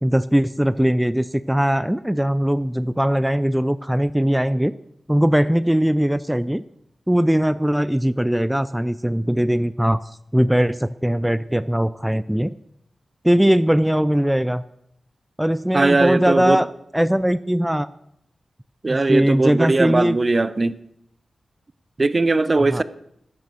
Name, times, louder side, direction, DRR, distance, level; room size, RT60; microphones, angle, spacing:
voice 1, 0.0-4.7 5.1-6.6 7.1-10.0 10.3-12.5 13.2-14.6 15.4-16.7 16.9-17.9 18.9-20.2 22.7-22.8, equal, 5° right, 0.5 m, -20 dB
voice 2, 15.7-16.6 18.8-20.8 22.0-22.8, right 3 dB, 40° right, 0.8 m, -19 dB
13.0 x 10.5 x 6.3 m
cardioid pair, 50°, 0 cm